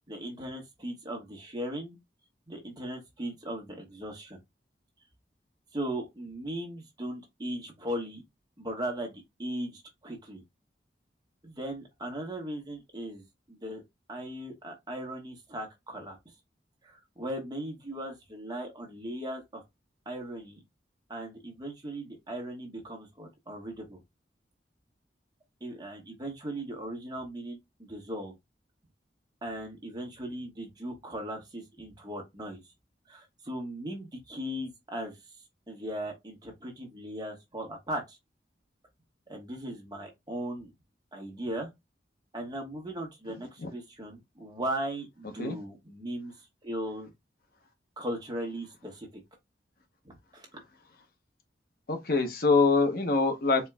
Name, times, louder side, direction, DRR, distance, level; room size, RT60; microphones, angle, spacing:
voice 1, 0.1-2.0 2.5-4.4 5.7-8.2 8.6-10.4 11.4-13.8 14.1-16.2 16.8-19.6 20.0-20.6 21.1-24.0 25.6-28.3 29.4-32.6 33.1-35.2 35.7-38.2 39.3-40.7 41.1-41.7 42.3-46.3 46.6-47.1 48.0-49.2 50.0-50.5, right 1 dB, 25° right, 1.3 m, -38 dB
voice 2, 51.9-53.7, left 3 dB, 55° left, 0.8 m, -24 dB
4.4 x 3.0 x 2.2 m
head